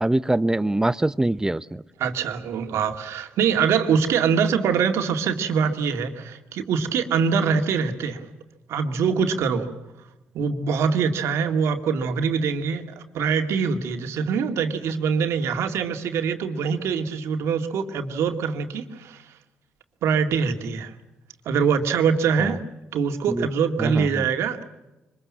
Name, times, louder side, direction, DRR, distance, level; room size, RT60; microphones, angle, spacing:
voice 1, 0.0-1.8 22.4-22.5 23.3-23.5 23.8-24.2, right 1 dB, 15° right, 15 dB, 0.8 m, -23 dB
voice 2, 2.0-8.2 8.7-9.7 10.3-19.2 20.0-20.9 21.5-22.6 22.9-24.7, right 6 dB, 80° right, 6 dB, 2.1 m, -24 dB
25.0 x 21.5 x 7.5 m, 1.0 s
supercardioid pair, 65°, 5 cm